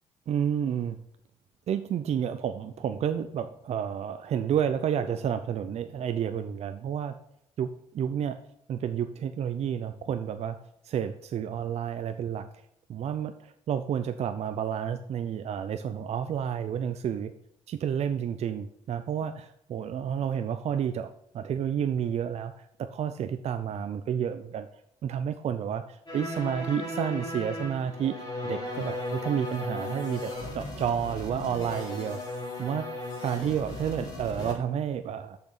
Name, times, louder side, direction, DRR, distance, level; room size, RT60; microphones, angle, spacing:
voice 1, 0.3-1.0 1.7-7.1 7.6-8.4 8.7-10.6 10.8-12.5 12.9-17.3 17.7-22.5 22.8-24.7 25.0-32.2 32.6-35.4, right 8 dB, 60° right, 9 dB, 0.5 m, -30 dB
sound 1, 26.1-34.5, left 2 dB, 40° left, 3.4 m, -36 dB
6.9 x 6.0 x 6.5 m, 0.74 s
supercardioid pair, 70°, 12 cm